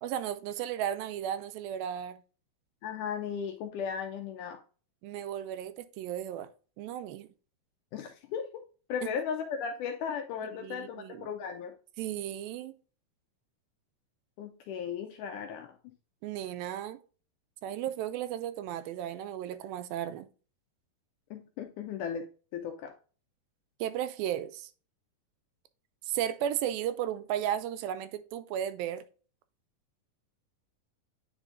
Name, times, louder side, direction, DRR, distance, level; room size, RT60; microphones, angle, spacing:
voice 1, 0.0-2.2 5.0-6.5 6.8-7.3 9.0-9.1 10.6-11.3 12.0-12.7 16.2-17.0 17.6-20.3 23.8-24.7 26.1-29.0, right 10 dB, 85° right, 2.3 m, -34 dB
voice 2, 2.8-4.6 7.9-8.6 8.9-11.7 14.4-15.7 21.3-22.3 22.5-22.9, left 7 dB, 80° left, 1.9 m, -36 dB
8.9 x 4.9 x 2.5 m
omnidirectional pair, 4.2 m